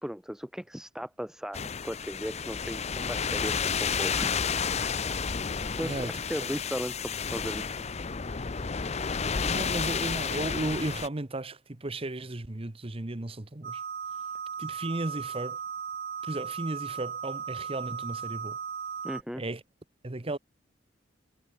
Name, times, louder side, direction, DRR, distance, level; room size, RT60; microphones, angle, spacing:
voice 1, 0.0-4.4 4.8-4.9 5.7-8.3 19.0-19.4, equal, 5° right, 0.8 m, -37 dB
sound 1, 1.5-11.1, left 6 dB, 35° left, 0.7 m, -31 dB
voice 2, 5.8-6.1 6.4-6.5 9.4-13.8 14.6-15.6 16.2-18.6 19.4-19.6 20.0-20.4, right 2 dB, 30° right, 1.1 m, -35 dB
sound 2, 13.6-19.2, right 7 dB, 50° right, 1.3 m, -37 dB
head